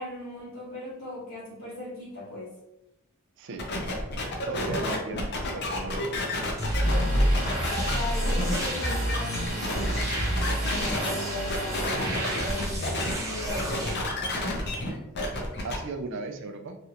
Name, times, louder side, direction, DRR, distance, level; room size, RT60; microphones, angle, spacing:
voice 1, 0.0-2.5 4.7-5.0 7.9-10.1 10.5-14.1, left 1 dB, 80° left, -7 dB, 1.4 m, -38 dB
sound 1, 3.6-11.1 11.5-13.1 13.4-15.8, left 1 dB, 55° left, 0.6 m, -30 dB
voice 2, 4.5-6.2 6.6-6.8 15.6-16.8, right 3 dB, 60° right, 6 dB, 0.4 m, -36 dB
sound 2, 6.6-13.9, right 1 dB, 15° right, 0.7 m, -29 dB
Domestic sounds home sounds, 6.8-12.6, equal, 40° right, 1.0 m, -37 dB
3.2 x 2.5 x 2.8 m, 0.86 s
head